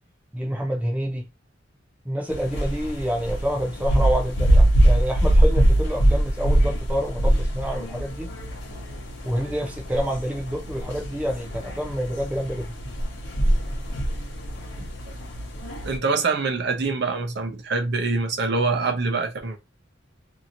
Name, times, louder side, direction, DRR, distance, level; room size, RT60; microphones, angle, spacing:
voice 1, 0.3-1.3 2.0-8.3 9.2-12.8, equal, 5° right, 0.5 m, -28 dB
sound 1, 2.3-16.0, right 1 dB, 60° left, 1.0 m, -23 dB
voice 2, 14.8-15.1 15.8-19.6, right 4 dB, 60° right, 0.7 m, -25 dB
2.8 x 2.8 x 2.5 m
head